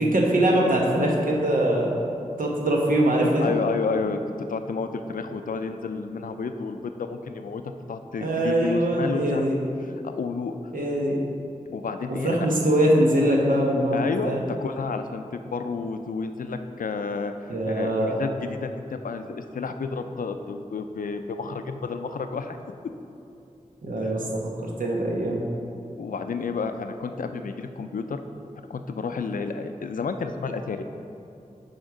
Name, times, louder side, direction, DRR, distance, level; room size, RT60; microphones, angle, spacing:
voice 1, 0.0-1.9 2.4-3.5 8.2-9.6 10.7-11.2 12.2-14.4 17.5-18.2 23.8-25.4, right 1 dB, 75° right, -2 dB, 1.1 m, -22 dB
voice 2, 3.4-4.2 4.5-7.6 7.9-9.6 10.0-10.6 11.7-12.5 13.9-17.3 17.6-22.6 26.0-28.2 28.7-30.8, left 4 dB, 75° left, 8 dB, 0.4 m, -31 dB
6.4 x 4.3 x 4.8 m, 2.7 s
wide cardioid pair, 70°, 14 cm